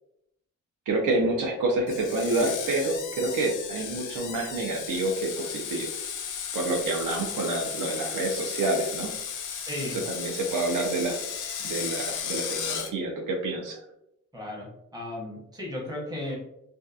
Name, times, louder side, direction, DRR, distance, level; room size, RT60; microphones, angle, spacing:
voice 1, 0.9-5.9 6.5-9.1 9.9-11.2 11.6-13.8, right 2 dB, 80° right, 1 dB, 0.5 m, -28 dB
Screech, 1.9-12.9, left 7 dB, 70° left, 0.5 m, -35 dB
voice 2, 9.6-10.0 14.3-16.4, left 1 dB, 10° right, -3 dB, 0.7 m, -35 dB
2.7 x 2.2 x 2.3 m, 0.81 s
wide cardioid pair, 165°, 31 cm